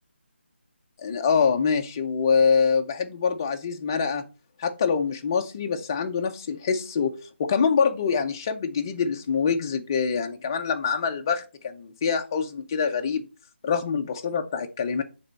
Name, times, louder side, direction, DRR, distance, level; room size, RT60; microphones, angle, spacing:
voice 1, 1.0-4.3 4.6-7.1 7.4-13.3 13.6-15.0, left 6 dB, 20° left, 0.5 m, -25 dB
7.8 x 3.4 x 4.0 m
figure-of-eight pair, 165°, 6 cm